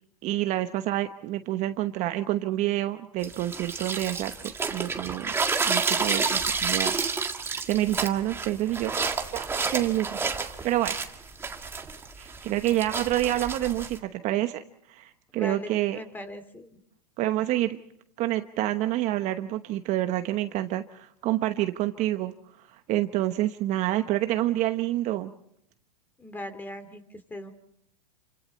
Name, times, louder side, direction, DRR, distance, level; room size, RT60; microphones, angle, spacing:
voice 1, 0.2-5.3 5.6-6.9 7.7-9.0 9.3-11.0 12.2-14.6 14.9-16.0 17.2-17.8 18.2-22.3 22.9-25.3, right 14 dB, 35° right, 9 dB, 1.1 m, -28 dB
sound 1, 3.2-14.0, right 4 dB, 10° right, 1.8 m, -30 dB
voice 2, 15.3-16.7 26.2-27.5, left 1 dB, 10° left, 11 dB, 2.8 m, -39 dB
29.5 x 25.5 x 4.3 m, 0.73 s
hypercardioid pair, 130°, 20 cm